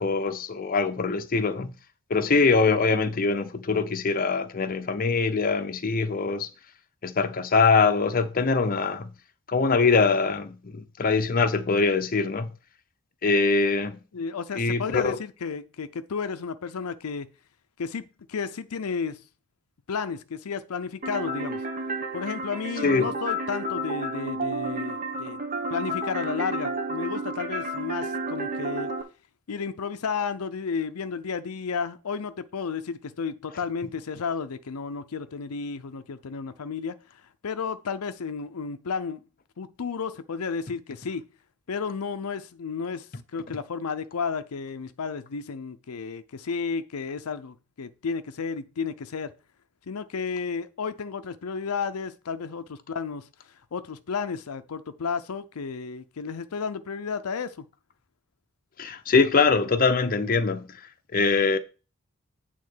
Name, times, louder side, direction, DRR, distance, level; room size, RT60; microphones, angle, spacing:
voice 1, 0.0-1.7 2.1-6.5 7.0-9.1 9.5-12.5 13.2-14.0 14.6-15.1 22.8-23.1 58.8-60.7 61.1-61.6, left 4 dB, 40° left, 0.6 m, -23 dB
voice 2, 14.1-17.3 17.8-19.2 19.9-21.6 22.1-25.4 25.7-28.9 29.5-39.2 39.6-41.2 41.7-49.3 49.9-53.3 53.7-57.7, left 5 dB, 85° left, 0.5 m, -32 dB
sound 1, 21.0-29.0, right 2 dB, 35° right, 1.1 m, -31 dB
8.6 x 3.7 x 6.6 m
head